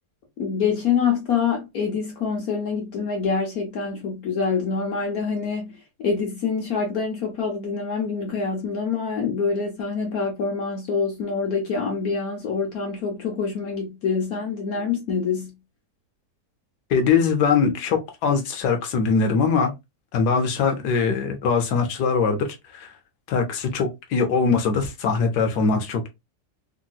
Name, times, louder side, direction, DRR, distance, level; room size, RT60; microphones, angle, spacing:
voice 1, 0.4-15.6, left 5 dB, 65° left, 1.2 m, -26 dB
voice 2, 16.9-19.7 20.1-22.5 22.7-22.9 23.3-26.1, left 5 dB, 85° left, 1.2 m, -22 dB
3.3 x 2.8 x 2.2 m
omnidirectional pair, 1.7 m